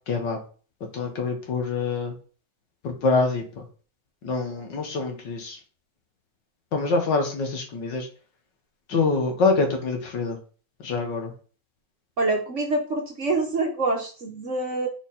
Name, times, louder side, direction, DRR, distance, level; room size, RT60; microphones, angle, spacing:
voice 1, 0.1-0.4 0.9-2.1 2.8-3.6 4.2-5.6 6.7-8.1 8.9-10.4 10.8-11.3, left 3 dB, 70° left, 3 dB, 2.0 m, -25 dB
voice 2, 12.2-14.9, right 2 dB, 50° right, 3 dB, 1.0 m, -26 dB
5.6 x 4.4 x 4.2 m, 0.38 s
omnidirectional pair, 2.0 m